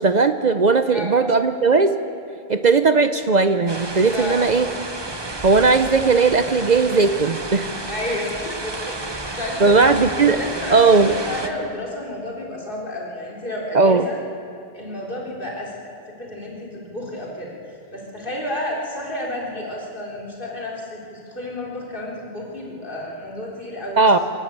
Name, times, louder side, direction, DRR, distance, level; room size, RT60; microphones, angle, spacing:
voice 1, 0.0-1.9 2.5-4.7 5.4-7.8 9.6-10.4 10.7-11.1 13.7-14.0 24.0-24.2, right 4 dB, 45° right, 9 dB, 0.8 m, -17 dB
sound 1, 3.7-11.5, right 2 dB, 25° right, 1.1 m, -31 dB
voice 2, 4.1-4.4 7.9-14.2 14.7-15.7 16.1-24.2, left 1 dB, 55° left, -3 dB, 4.0 m, -31 dB
28.0 x 11.5 x 8.8 m, 2.5 s
omnidirectional pair, 1.0 m